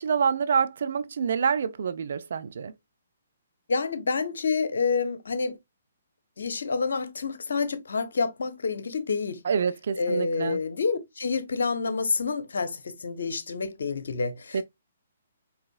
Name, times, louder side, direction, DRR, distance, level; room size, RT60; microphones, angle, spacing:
voice 1, 0.0-2.7 9.4-10.6 14.5-14.6, right 6 dB, 60° right, 0.5 m, -27 dB
voice 2, 3.7-5.6 6.4-9.4 10.0-14.6, left 4 dB, 70° left, 0.8 m, -28 dB
4.9 x 3.4 x 2.3 m
figure-of-eight pair, 130°, 0 cm